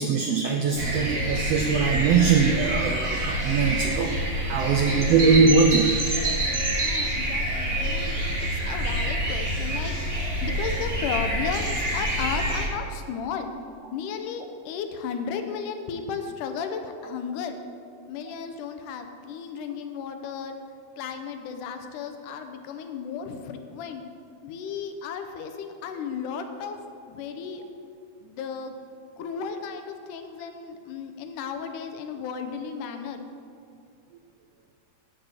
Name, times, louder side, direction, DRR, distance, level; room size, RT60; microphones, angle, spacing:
voice 1, 0.0-4.1 4.4-5.9, right 5 dB, 85° right, 3 dB, 1.4 m, -21 dB
sound 1, 0.8-12.7, right 1 dB, 40° right, 0.8 m, -27 dB
voice 2, 4.6-5.2 6.8-13.5 13.9-17.6 18.1-20.5 21.0-24.0 24.4-26.8 27.1-27.6 28.2-28.8 29.2-33.2, left 6 dB, 85° left, 7 dB, 2.3 m, -34 dB
7.8 x 6.8 x 7.8 m, 2.4 s
omnidirectional pair, 3.6 m